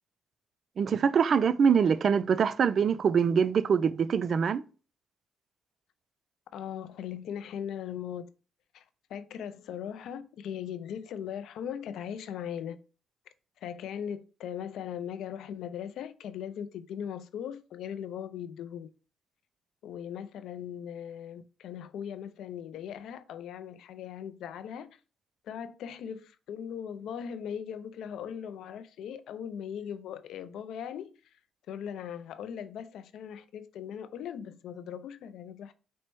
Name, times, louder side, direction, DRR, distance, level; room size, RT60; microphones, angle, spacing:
voice 1, 0.8-4.6, right 6 dB, 50° right, 0.3 m, -24 dB
voice 2, 6.5-8.3 8.7-8.8 9.1-12.8 13.6-18.9 19.8-24.9 25.4-31.2 31.7-35.7, left 8 dB, 80° left, 0.4 m, -39 dB
4.3 x 2.1 x 4.5 m
cardioid pair, 90°, 0 cm